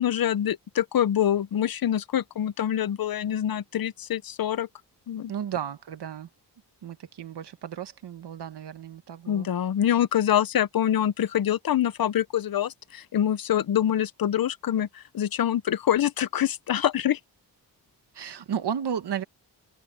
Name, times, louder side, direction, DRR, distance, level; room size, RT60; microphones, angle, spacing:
voice 1, 0.0-4.7 5.1-5.3 9.3-17.2, left 10 dB, 60° left, 0.7 m, -25 dB
voice 2, 5.3-6.3 6.8-9.5 18.1-19.2, right 8 dB, 75° right, 1.2 m, -33 dB
wide cardioid pair, 155°, 40 cm